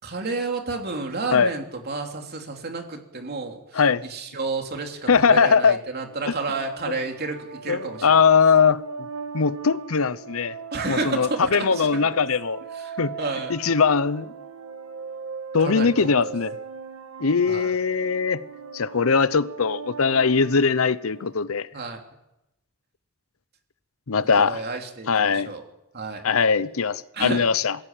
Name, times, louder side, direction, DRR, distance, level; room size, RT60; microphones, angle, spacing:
voice 1, 0.0-8.2 10.7-12.0 12.7-13.5 15.6-15.9 17.5-17.7 21.7-22.0 24.3-25.6 25.9-26.2 27.1-27.4, right 3 dB, 50° right, 3.1 m, -31 dB
voice 2, 5.1-5.8 6.3-6.4 7.7-8.8 9.3-10.5 10.9-12.6 13.0-13.2 13.5-14.3 15.5-16.5 17.2-18.4 18.7-21.7 24.1-24.6 25.1-25.5 26.2-27.8, left 5 dB, 80° left, 0.8 m, -20 dB
sound 1, 6.0-21.4, right 5 dB, 75° right, 1.8 m, -38 dB
21.5 x 16.0 x 9.0 m
head